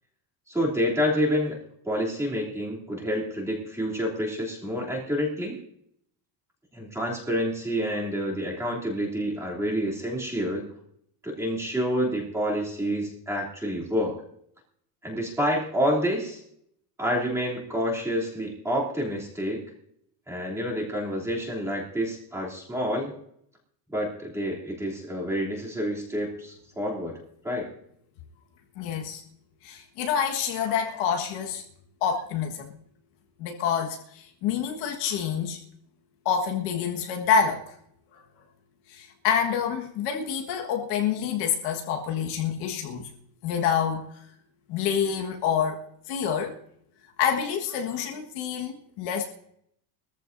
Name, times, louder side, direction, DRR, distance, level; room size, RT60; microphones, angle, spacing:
voice 1, 0.5-1.6 1.8-5.6 6.7-10.7 11.2-14.2 15.0-16.4 17.0-19.6 20.3-23.1 23.9-27.2 27.4-27.7, equal, 5° right, -4 dB, 3.1 m, -28 dB
voice 2, 28.8-29.2 29.6-31.6 32.0-32.7 33.4-35.6 36.2-37.7 38.1-38.2 38.9-43.1 43.4-44.2 44.7-46.6 47.2-49.3, left 7 dB, 55° left, 2 dB, 1.7 m, -27 dB
22.5 x 14.0 x 2.7 m, 0.71 s
cardioid pair, 175°, 47 cm